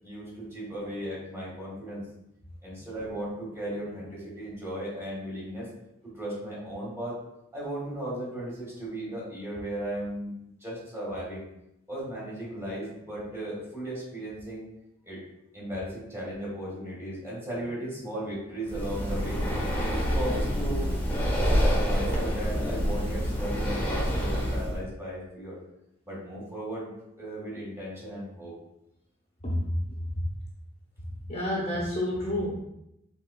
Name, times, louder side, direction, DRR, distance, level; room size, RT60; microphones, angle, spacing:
voice 1, 0.0-2.0 2.6-5.7 6.0-7.2 7.5-11.4 11.9-14.6 15.0-15.2 15.5-19.4 19.9-20.9 21.8-25.6 26.1-26.9 27.2-28.5, right 1 dB, 15° right, -6 dB, 1.7 m, -36 dB
Breathing, 18.7-24.8, equal, 10° left, 1.3 m, -27 dB
voice 2, 29.4-29.8 30.1-30.2 31.3-32.5, left 1 dB, 30° left, -5 dB, 1.1 m, -29 dB
5.5 x 3.7 x 2.3 m, 0.82 s
head